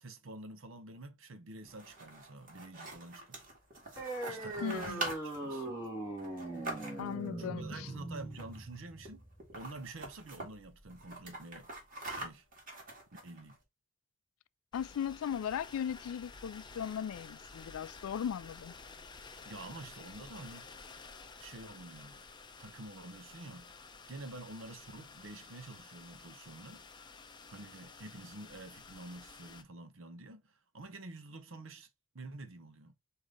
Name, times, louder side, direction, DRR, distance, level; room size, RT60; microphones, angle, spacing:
voice 1, 0.0-3.5 4.3-5.7 7.4-11.7 12.1-12.5 13.2-13.6 19.5-20.7 21.4-22.3 22.6-23.7 24.1-26.9 27.5-31.9 32.1-32.9, right 2 dB, 65° right, 0.8 m, -48 dB
sound 1, 1.6-7.3 8.3-8.8 9.0-9.1 9.4-10.5 10.9-13.5, right 2 dB, 40° right, 1.8 m, -44 dB
sound 2, 4.0-11.0, right 2 dB, 15° right, 1.7 m, -41 dB
voice 2, 4.6-5.0 7.0-7.9 14.7-18.7, left 8 dB, 90° left, 0.3 m, -38 dB
sound 3, 14.7-29.6, left 4 dB, 20° left, 0.5 m, -52 dB
4.9 x 2.8 x 3.8 m
head